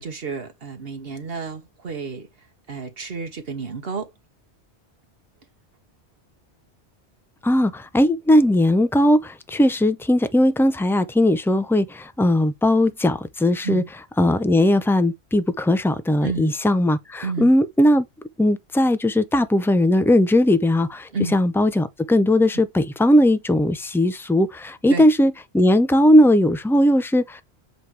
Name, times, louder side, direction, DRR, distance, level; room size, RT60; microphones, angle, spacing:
voice 1, 0.0-2.3 2.7-4.1 13.6-13.9 16.2-16.5 17.2-17.5 21.1-21.4 22.5-22.6 24.9-25.1, right 5 dB, 60° right, 1.2 m, -30 dB
voice 2, 7.4-13.8 14.2-18.0 18.4-27.4, left 1 dB, 5° left, 0.3 m, -18 dB
7.9 x 3.2 x 4.6 m
omnidirectional pair, 1.1 m